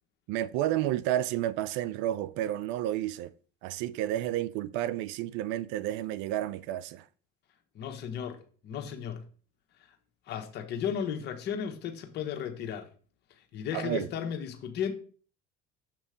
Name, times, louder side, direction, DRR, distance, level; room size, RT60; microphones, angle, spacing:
voice 1, 0.3-3.3 3.6-7.1 13.7-14.1, right 13 dB, 75° right, 0.4 m, -31 dB
voice 2, 7.7-8.4 8.6-9.2 10.3-12.9 13.5-14.9, left 8 dB, 60° left, 1.2 m, -34 dB
6.8 x 3.0 x 5.0 m
supercardioid pair, 85°, 20 cm